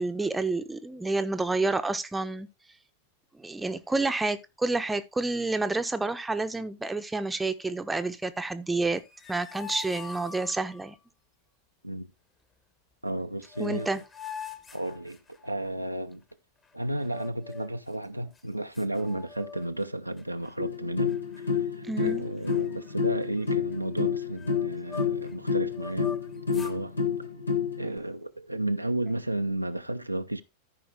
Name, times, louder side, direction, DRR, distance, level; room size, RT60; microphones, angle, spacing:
voice 1, 0.0-2.5 3.4-9.0 9.3-11.0 13.6-14.0 21.9-22.2, right 3 dB, 10° right, 0.8 m, -29 dB
sound 1, 8.9-10.9 13.1-13.2 13.4-15.7 17.0-17.8 18.4-18.5 18.7-19.9 20.2-20.5 21.1-21.7 22.0-22.2 22.4-25.3 25.7-26.8, left 5 dB, 20° left, 1.3 m, -44 dB
voice 2, 13.0-14.0 14.7-16.2 16.7-26.1 26.5-27.0 27.8-30.4, right 1 dB, 90° right, 0.6 m, -33 dB
sound 2, 20.6-27.9, left 6 dB, 80° left, 1.7 m, -29 dB
13.5 x 5.1 x 3.5 m
figure-of-eight pair, 90°, 0 cm